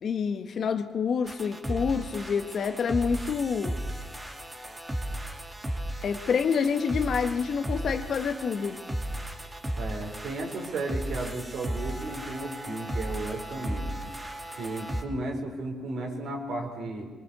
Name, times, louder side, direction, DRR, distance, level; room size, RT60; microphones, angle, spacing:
voice 1, 0.0-3.8 6.0-8.8, left 6 dB, 55° left, 8 dB, 1.5 m, -27 dB
sound 1, 1.3-15.0, right 1 dB, 15° right, 2.6 m, -35 dB
voice 2, 9.8-14.0 14.6-17.1, right 2 dB, 70° right, 2 dB, 4.5 m, -34 dB
22.5 x 22.0 x 7.0 m, 1.3 s
cardioid pair, 90°, 0 cm